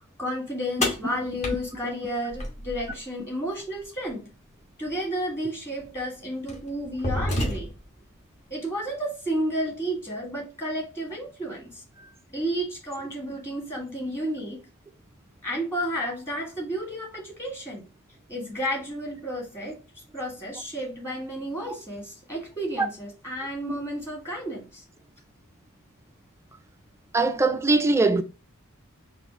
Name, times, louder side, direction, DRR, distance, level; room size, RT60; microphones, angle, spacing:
voice 1, 0.2-4.3 4.8-7.7 8.5-11.8 12.3-14.6 15.4-17.8 18.3-19.8 20.1-24.8, equal, 10° left, 1.6 m, -32 dB
sound 1, 0.8-3.0 4.9-5.0 5.8-6.0 6.5-8.0, left 1 dB, 30° left, 1.3 m, -30 dB
voice 2, 27.1-28.2, right 3 dB, 10° right, 0.3 m, -21 dB
4.2 x 2.5 x 4.4 m
head